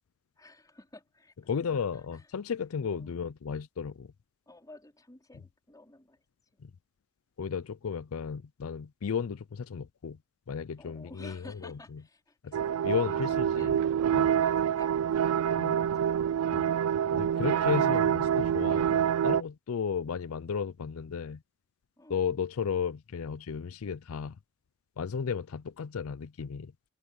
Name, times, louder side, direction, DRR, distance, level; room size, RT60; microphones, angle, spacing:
voice 1, 0.4-1.8 2.1-2.3 2.9-3.1 4.5-6.3 6.5-6.6 10.8-13.9 14.3-16.7 17.6-18.0 22.0-22.2, left 2 dB, 15° left, 4.5 m, -54 dB
voice 2, 1.5-4.1 6.6-6.7 7.4-10.2 10.5-11.7 12.4-12.6 12.8-13.8 14.1-14.4 15.6-15.7 16.5-16.6 17.1-21.4 22.1-24.4 25.0-26.7, left 6 dB, 75° left, 0.5 m, -34 dB
sound 1, 12.5-19.4, right 9 dB, 80° right, 0.3 m, -26 dB
head